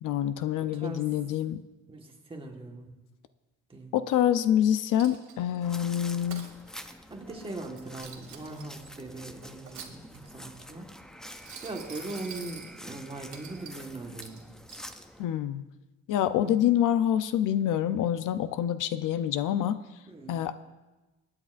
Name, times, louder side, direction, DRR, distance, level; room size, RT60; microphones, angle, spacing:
voice 1, 0.0-1.6 3.9-6.5 15.2-15.6 16.1-19.8 20.3-20.5, left 10 dB, 75° left, 13 dB, 0.6 m, -26 dB
voice 2, 0.6-1.1 1.9-2.9 3.7-3.9 7.1-10.9 11.6-14.4 16.4-16.7 20.1-20.4, right 2 dB, 15° right, 1 dB, 1.4 m, -40 dB
Coin (dropping), 5.0-5.6 6.0-6.5 7.6-8.8 9.4-10.4 11.3-12.7 13.3-13.8 14.2-14.9, right 7 dB, 60° right, 1.8 m, -46 dB
sound 1, 5.6-15.3, equal, ahead, 0.4 m, -47 dB
24.5 x 9.8 x 2.5 m, 1.1 s
cardioid pair, 160°, 32 cm